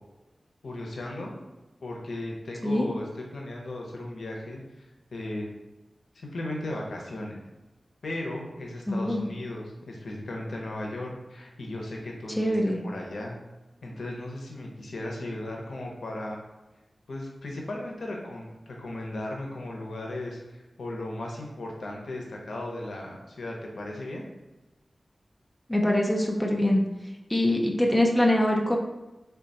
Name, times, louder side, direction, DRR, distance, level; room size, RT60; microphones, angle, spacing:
voice 1, 0.6-1.4 1.8-4.6 5.1-5.5 6.1-7.4 8.0-12.6 12.8-13.4 13.8-16.4 17.1-24.3, left 1 dB, 90° left, -1 dB, 0.7 m, -36 dB
voice 2, 8.9-9.2 12.4-12.8 25.7-26.8 27.3-28.8, left 1 dB, 15° left, 1 dB, 0.5 m, -23 dB
3.7 x 2.2 x 3.9 m, 1.1 s
wide cardioid pair, 65°, 0 cm